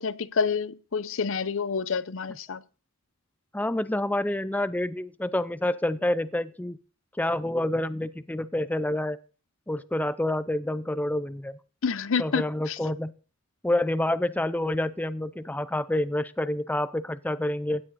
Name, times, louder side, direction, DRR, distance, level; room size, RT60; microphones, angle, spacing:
voice 1, 0.0-2.6 11.8-12.8, left 5 dB, 65° left, 0.7 m, -28 dB
voice 2, 3.5-6.8 7.2-9.2 9.7-11.6 12.2-13.1 13.6-17.8, left 1 dB, 10° left, 0.5 m, -28 dB
16.5 x 10.5 x 4.1 m
head